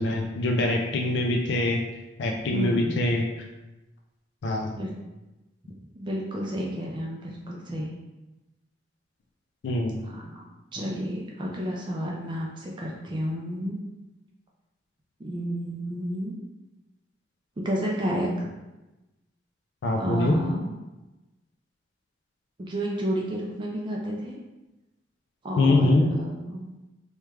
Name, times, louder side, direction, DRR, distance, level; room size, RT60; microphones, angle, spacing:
voice 1, 0.0-1.8 2.2-3.2 4.4-4.8 9.6-10.1 19.8-20.4 25.6-26.1, left 2 dB, 65° left, 1 dB, 0.3 m, -24 dB
voice 2, 2.5-3.0 4.7-4.9 5.9-7.9 10.1-10.4 10.7-13.8 15.2-16.4 17.6-18.5 19.9-20.7 22.6-24.4 25.4-26.6, equal, 25° right, -2 dB, 0.4 m, -31 dB
3.1 x 2.3 x 3.3 m, 1.0 s
head